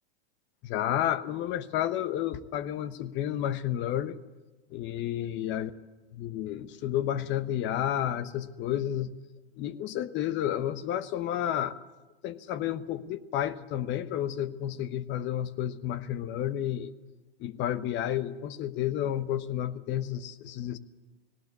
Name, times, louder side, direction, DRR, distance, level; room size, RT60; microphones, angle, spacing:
voice 1, 0.6-4.2 4.7-5.7 6.2-9.1 9.6-11.7 12.2-16.9 17.4-20.8, left 11 dB, 40° left, 14 dB, 1.1 m, -31 dB
18.0 x 18.0 x 8.3 m, 1.2 s
hypercardioid pair, 110°, 30 cm